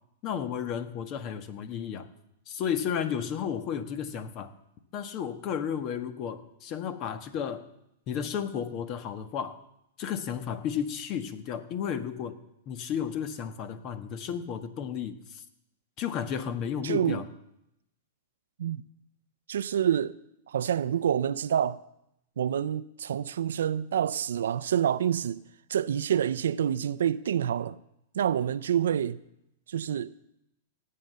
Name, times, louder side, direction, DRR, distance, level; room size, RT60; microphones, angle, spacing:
voice 1, 0.2-2.1 2.5-4.5 4.9-7.6 8.1-9.6 10.0-12.4 12.7-15.4 16.0-17.2, left 8 dB, 40° left, 1.3 m, -33 dB
voice 2, 16.8-17.2 18.6-18.8 19.5-20.2 20.5-21.8 22.4-25.4 25.7-27.8 28.1-29.2 29.7-30.1, right 9 dB, 80° right, 0.5 m, -27 dB
17.5 x 7.7 x 6.8 m
hypercardioid pair, 125°, 0 cm